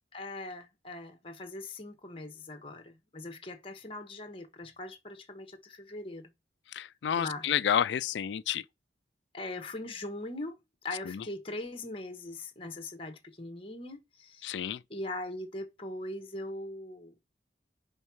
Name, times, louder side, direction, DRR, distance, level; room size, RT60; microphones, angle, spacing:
voice 1, 0.1-6.3 7.1-7.5 9.3-10.6 10.8-14.5 14.9-17.1, left 2 dB, 30° left, 1.2 m, -41 dB
voice 2, 6.7-8.6 11.1-11.2 14.4-14.8, left 8 dB, 70° left, 0.3 m, -30 dB
5.5 x 5.3 x 4.7 m
head